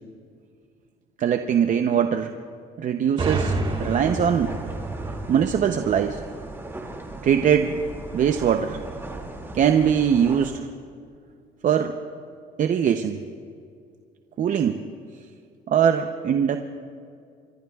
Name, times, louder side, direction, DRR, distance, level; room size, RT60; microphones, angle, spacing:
voice 1, 1.2-2.3 2.8-3.5 3.8-4.5 5.3-6.2 7.2-7.8 8.1-8.8 9.5-10.7 11.6-12.0 12.6-13.2 14.4-14.8 15.7-16.6, right 8 dB, 50° right, 7 dB, 0.7 m, -21 dB
sound 1, 3.2-6.8, right 3 dB, 30° right, 1.9 m, -30 dB
sound 2, 3.6-10.5, right 2 dB, 15° right, 2.4 m, -38 dB
25.5 x 23.5 x 2.4 m, 2.3 s
cardioid pair, 110°, 17 cm